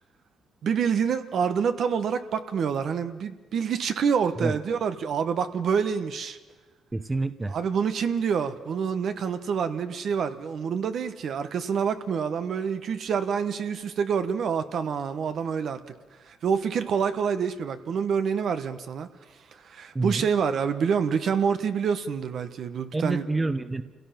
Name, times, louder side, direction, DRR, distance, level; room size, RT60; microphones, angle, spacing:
voice 1, 0.6-6.4 7.5-15.8 16.3-19.1 19.6-23.2, right 6 dB, 65° right, 9 dB, 1.2 m, -27 dB
voice 2, 6.9-7.6 19.9-20.3 22.9-23.8, right 2 dB, 20° right, 11 dB, 0.9 m, -27 dB
27.0 x 16.5 x 5.9 m, 1.3 s
cardioid pair, 90°, 0 cm